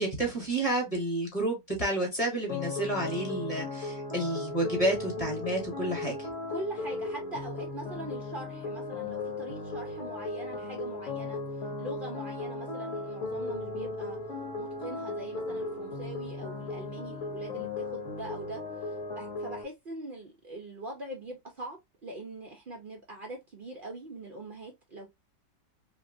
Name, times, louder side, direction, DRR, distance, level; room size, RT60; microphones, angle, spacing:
voice 1, 0.0-6.3, right 1 dB, 25° left, 1.0 m, -30 dB
sound 1, 2.5-19.6, left 2 dB, 55° left, 1.0 m, -36 dB
voice 2, 6.5-11.4 11.8-14.2 14.6-25.1, right 2 dB, 85° right, 0.4 m, -42 dB
2.9 x 2.8 x 2.6 m
omnidirectional pair, 1.8 m